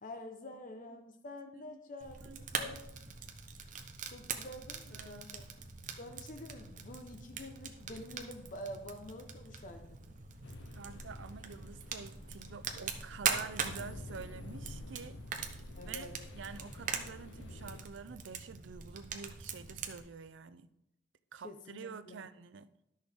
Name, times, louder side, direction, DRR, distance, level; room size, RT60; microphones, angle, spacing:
voice 1, 0.0-2.2 2.5-2.8 4.1-5.4 6.0-10.0 15.8-16.2 21.4-22.2, left 1 dB, 45° left, 0.8 m, -47 dB
voice 2, 0.9-1.2 1.7-1.8 2.2-2.8 4.9-5.2 10.8-15.2 15.8-16.1 16.3-20.7 21.3-22.7, right 5 dB, 80° right, 0.5 m, -48 dB
Fire, 2.0-20.0, right 6 dB, 45° right, 0.9 m, -42 dB
sound 1, 10.4-17.8, left 3 dB, 85° left, 0.6 m, -50 dB
12.0 x 6.4 x 3.6 m
head